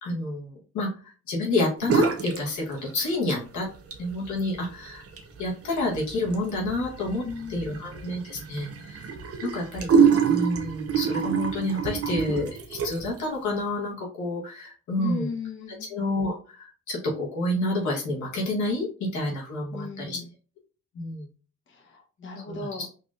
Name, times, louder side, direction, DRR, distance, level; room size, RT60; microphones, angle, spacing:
voice 1, 0.0-0.9 1.3-3.7 4.0-5.1 5.4-7.2 7.5-9.0 9.4-15.3 15.9-20.2 20.9-21.3 22.5-22.9, left 2 dB, 75° left, -3 dB, 1.3 m, -29 dB
sound 1, 1.8-2.4 2.7-3.4 3.7-13.2, right 6 dB, 50° right, 0.8 m, -27 dB
voice 2, 7.2-7.9 15.0-15.9 19.7-20.3 21.7-22.8, left 4 dB, 40° left, 0 dB, 1.1 m, -36 dB
4.0 x 2.8 x 2.5 m, 0.37 s
cardioid pair, 90°, 30 cm